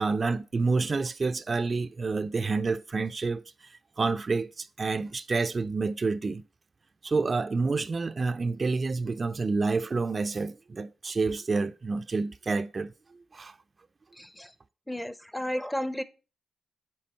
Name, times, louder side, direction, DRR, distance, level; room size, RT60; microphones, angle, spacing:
voice 1, 0.0-6.4 7.0-12.9 13.3-13.6, right 4 dB, 45° right, 0.4 m, -28 dB
voice 2, 14.2-14.5 14.9-16.0, left 1 dB, 10° left, 0.6 m, -33 dB
7.6 x 3.3 x 4.3 m
supercardioid pair, 50°, 0 cm